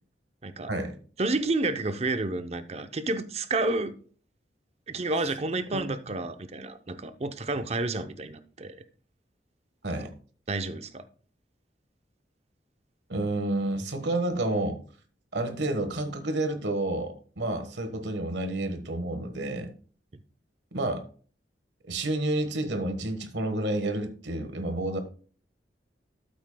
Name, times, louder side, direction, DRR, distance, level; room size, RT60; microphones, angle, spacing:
voice 1, 1.2-3.9 4.9-8.8 10.0-10.1 10.5-11.0, right 2 dB, 35° right, 10 dB, 0.7 m, -30 dB
voice 2, 13.1-14.8 15.3-19.7 20.7-21.0 21.9-25.0, right 2 dB, 80° right, 8 dB, 1.4 m, -30 dB
12.5 x 7.9 x 2.2 m, 0.42 s
head